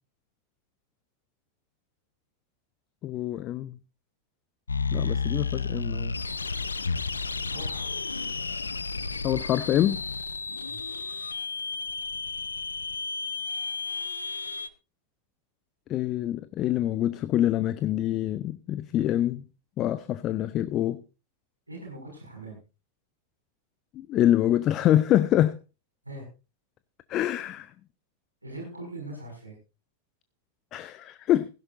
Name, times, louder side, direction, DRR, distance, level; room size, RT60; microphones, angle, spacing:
voice 1, 3.0-3.8 4.9-6.1 9.2-10.0 15.9-19.4 19.8-21.0 23.9-25.6 27.1-27.7 30.7-31.5, left 12 dB, 35° left, 0.7 m, -25 dB
sound 1, 4.7-14.7, left 4 dB, 75° left, 0.8 m, -32 dB
voice 2, 7.5-7.9 10.6-10.8 21.7-22.6 26.0-26.3 28.4-29.6, right 2 dB, 85° right, 6.1 m, -41 dB
17.0 x 16.0 x 2.6 m
figure-of-eight pair, 90°, 0 cm